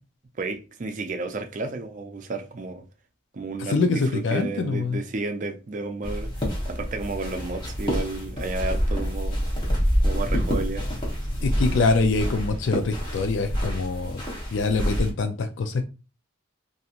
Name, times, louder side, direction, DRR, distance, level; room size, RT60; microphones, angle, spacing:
voice 1, 0.4-2.8 3.3-6.3 6.7-9.4 10.0-10.9, right 3 dB, 40° right, 0.4 m, -32 dB
voice 2, 3.7-5.0 11.4-14.2 14.5-15.8, left 3 dB, 70° left, 0.4 m, -24 dB
sound 1, 6.0-15.1, equal, 25° left, 0.9 m, -27 dB
2.8 x 2.6 x 2.4 m
head